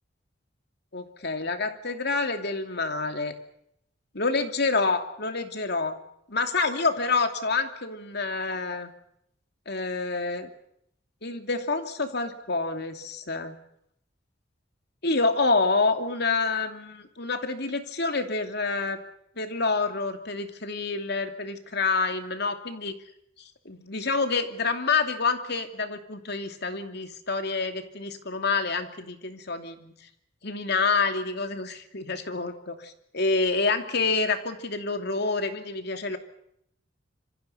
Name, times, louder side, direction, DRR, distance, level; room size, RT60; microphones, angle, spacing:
voice 1, 0.9-3.3 4.1-6.0 6.3-8.9 9.7-10.5 11.2-13.6 15.0-19.0 19.4-23.0 23.6-29.9 30.4-36.2, left 3 dB, 60° left, 7 dB, 2.7 m, -27 dB
26.5 x 25.0 x 5.7 m, 0.74 s
head